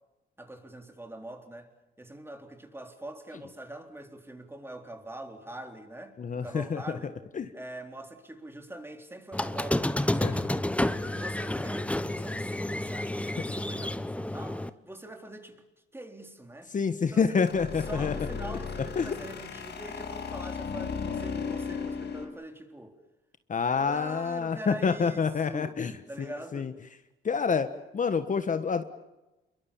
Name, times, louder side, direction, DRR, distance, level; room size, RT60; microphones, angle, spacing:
voice 1, 0.4-1.7 2.0-7.2 7.5-10.7 11.2-15.6 15.9-16.7 17.0-17.5 17.9-23.0 23.8-25.8 26.1-26.7, right 1 dB, 10° right, 3.9 m, -44 dB
voice 2, 6.2-7.0 7.3-7.4 10.2-10.3 16.7-18.1 18.9-19.2 23.5-25.9 26.2-26.3 26.5-26.7 27.2-27.7 27.9-28.8, left 5 dB, 40° left, 1.5 m, -27 dB
Squeak, 9.3-14.7, left 1 dB, 5° left, 1.1 m, -30 dB
sound 1, 10.9-12.5 17.5-22.3, left 5 dB, 60° left, 6.6 m, -36 dB
28.0 x 23.0 x 7.3 m
cardioid pair, 90°, 20 cm